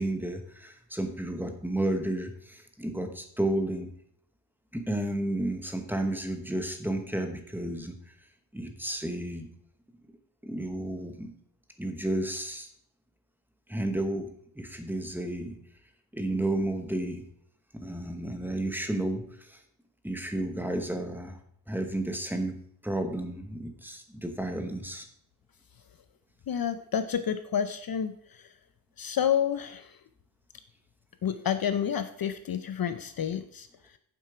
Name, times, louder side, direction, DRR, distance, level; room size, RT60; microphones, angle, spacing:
voice 1, 0.0-3.9 4.7-8.1 8.5-9.5 10.4-11.3 11.8-12.7 13.7-15.6 16.1-17.2 17.7-19.6 20.0-21.4 21.7-25.1, right 1 dB, 5° right, 5 dB, 1.1 m, -32 dB
voice 2, 26.5-28.5 29.0-30.0 31.2-34.0, left 8 dB, 50° left, 11 dB, 0.6 m, -30 dB
9.0 x 7.5 x 4.9 m, 0.66 s
wide cardioid pair, 165°, 47 cm